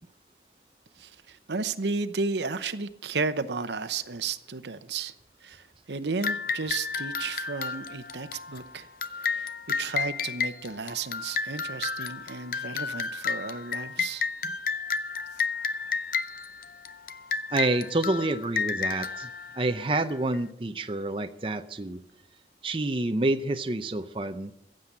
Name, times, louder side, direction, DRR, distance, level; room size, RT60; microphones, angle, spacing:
voice 1, 1.0-5.1 5.4-8.9 9.2-9.5 9.8-14.3, right 4 dB, 80° right, 0.9 m, -33 dB
sound 1, 6.2-20.4, left 5 dB, 55° left, 0.6 m, -32 dB
voice 2, 17.5-19.3 19.5-22.0 22.6-24.5, right 2 dB, 30° right, 0.6 m, -28 dB
15.5 x 7.7 x 8.7 m
head